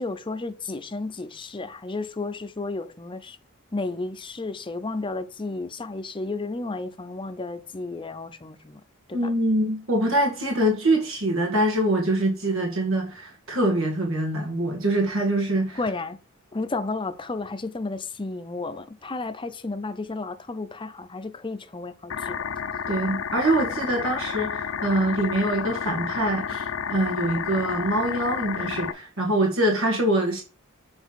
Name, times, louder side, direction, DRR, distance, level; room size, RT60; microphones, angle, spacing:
voice 1, 0.0-3.4 3.7-8.8 15.8-16.2 16.5-22.4, left 3 dB, 25° left, 0.6 m, -32 dB
voice 2, 9.1-15.8 22.9-30.4, right 1 dB, 80° right, 1.8 m, -24 dB
sound 1, 22.1-28.9, left 7 dB, 75° left, 0.6 m, -31 dB
7.2 x 3.5 x 5.6 m
head